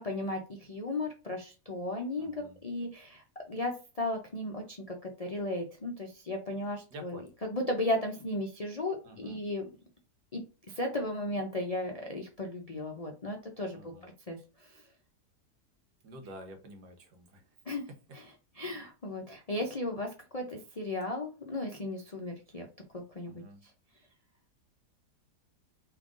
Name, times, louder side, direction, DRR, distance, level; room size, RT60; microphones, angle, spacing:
voice 1, 0.0-7.2 7.5-9.7 10.3-13.9 14.3-14.8 17.7-17.8 18.1-18.2 18.6-22.7 22.9-23.4, left 1 dB, 50° left, 1 dB, 0.4 m, -35 dB
voice 2, 2.2-2.6 6.9-7.3 9.0-9.4 13.7-14.1 16.0-17.5 23.3-23.6, equal, 80° right, 5 dB, 1.6 m, -49 dB
3.7 x 3.4 x 3.7 m, 0.33 s
omnidirectional pair, 1.7 m